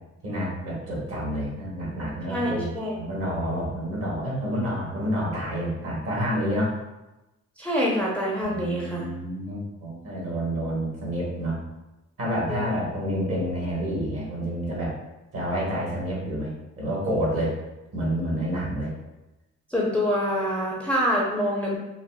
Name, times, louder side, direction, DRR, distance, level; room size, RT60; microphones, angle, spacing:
voice 1, 0.2-6.7 8.4-11.6 12.2-14.9 15.3-16.5 16.8-17.6 17.9-18.9, equal, 50° right, -5 dB, 1.4 m, -29 dB
voice 2, 2.3-2.9 7.6-9.1 12.5-12.7 19.7-21.8, equal, 5° left, -5 dB, 0.6 m, -26 dB
3.9 x 2.2 x 2.2 m, 1.0 s
cardioid pair, 90°, 30 cm